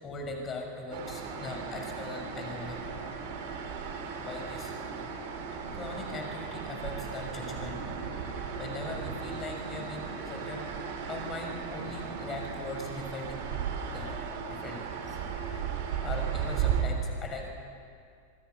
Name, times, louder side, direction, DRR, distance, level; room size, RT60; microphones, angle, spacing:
voice 1, 0.0-2.9 4.2-5.1 5.7-8.1 8.6-14.2 14.5-15.6 16.0-17.5, left 2 dB, 25° left, 3 dB, 6.1 m, -40 dB
sound 1, 0.9-16.8, right 7 dB, 50° right, 4.1 m, -36 dB
sound 2, 5.6-12.5, right 2 dB, 75° right, 7.0 m, -47 dB
27.0 x 25.5 x 7.0 m, 2.3 s
figure-of-eight pair, 90°, 0 cm